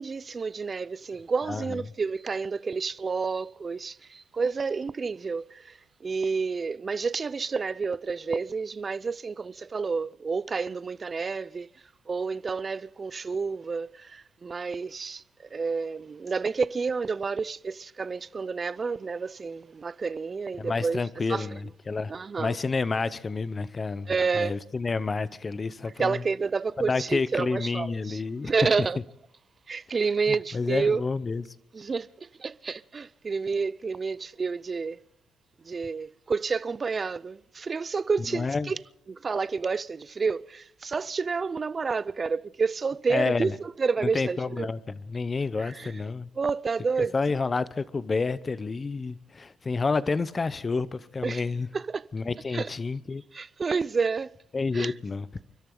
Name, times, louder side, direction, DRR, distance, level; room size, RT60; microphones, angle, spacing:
voice 1, 0.0-11.7 12.1-15.2 15.5-21.0 21.3-21.5 22.1-22.6 24.1-24.6 26.0-29.0 29.7-31.0 31.7-35.0 35.6-38.8 39.1-44.7 45.6-45.9 46.4-47.1 51.2-51.4 51.7-52.0 52.5-52.7 53.3-54.3 54.7-54.9, right 4 dB, 35° right, 0.5 m, -29 dB
voice 2, 20.6-22.1 22.4-26.2 26.8-28.5 30.3-31.4 38.3-38.7 43.1-43.5 44.0-46.3 47.1-51.7 52.1-53.2 54.5-55.3, left 4 dB, 30° left, 0.8 m, -29 dB
29.5 x 12.5 x 3.9 m
cardioid pair, 95°, 0 cm